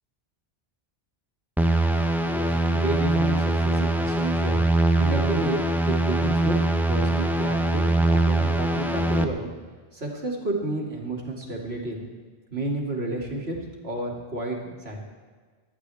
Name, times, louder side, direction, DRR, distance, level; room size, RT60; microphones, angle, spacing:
sound 1, 1.6-9.2, right 2 dB, ahead, 0.8 m, -23 dB
voice 1, 2.2-4.6 5.0-6.5 6.9-9.4 9.9-12.0 12.5-13.6 13.8-15.0, right 2 dB, 80° right, -1 dB, 2.9 m, -31 dB
24.0 x 11.5 x 3.5 m, 1.5 s
omnidirectional pair, 1.0 m